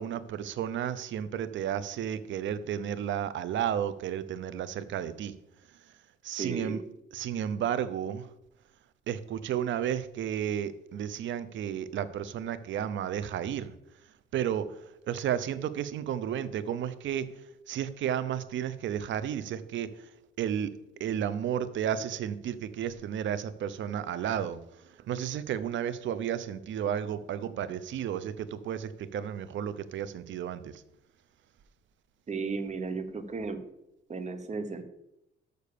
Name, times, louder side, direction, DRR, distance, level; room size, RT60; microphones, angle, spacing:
voice 1, 0.0-5.4 6.2-6.8 7.1-8.3 9.1-13.7 14.3-17.3 17.7-20.1 20.4-20.7 21.0-30.8, right 9 dB, 70° right, 15 dB, 0.7 m, -32 dB
voice 2, 6.3-6.8 32.3-33.6 34.1-34.8, right 4 dB, 35° right, 9 dB, 1.1 m, -34 dB
6.8 x 6.5 x 6.8 m, 0.86 s
cardioid pair, 90°, 20 cm